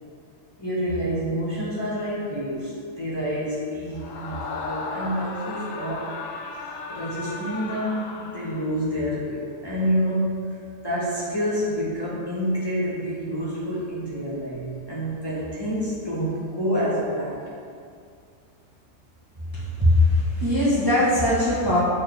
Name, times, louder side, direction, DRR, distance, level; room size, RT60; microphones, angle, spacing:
voice 1, 0.6-6.1 6.9-10.4 10.8-17.4, equal, 20° left, -9 dB, 1.1 m, -28 dB
Screaming, 3.9-8.8, left 3 dB, 75° left, 1.0 m, -35 dB
voice 2, 19.5-21.8, left 1 dB, 20° right, -9 dB, 1.0 m, -20 dB
6.5 x 4.4 x 3.3 m, 2.3 s
omnidirectional pair, 1.4 m